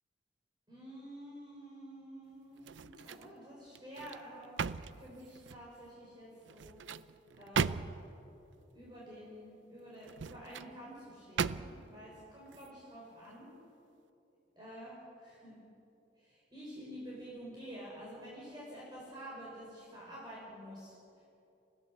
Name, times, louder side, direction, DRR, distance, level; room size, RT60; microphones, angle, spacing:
voice 1, 0.7-4.6 4.9-7.1 7.3-7.8 8.7-13.5 14.6-15.6 16.2-21.3, equal, 25° right, -6 dB, 5.2 m, -49 dB
sound 1, 2.6-3.3 3.7-5.7 6.4-8.2 10.0-10.7 11.4-12.0 12.5-12.7, right 5 dB, 75° right, 0.5 m, -38 dB
29.5 x 16.0 x 7.4 m, 2.8 s
head